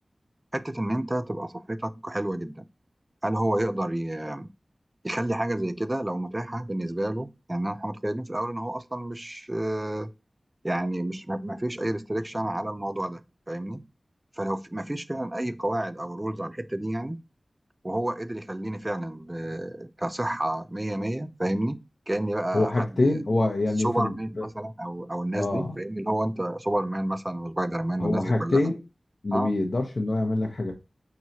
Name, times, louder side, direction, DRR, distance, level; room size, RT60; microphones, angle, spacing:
voice 1, 0.5-2.7 3.2-4.5 5.0-10.1 10.6-13.2 13.5-13.9 14.4-17.2 17.8-21.8 22.1-23.2 23.8-28.6 29.3-29.5, right 1 dB, 25° right, 0.5 m, -30 dB
voice 2, 22.5-24.5 25.4-25.8 28.0-28.8 29.2-30.7, left 2 dB, 65° left, 0.8 m, -25 dB
5.8 x 3.1 x 2.9 m
wide cardioid pair, 50°, 0 cm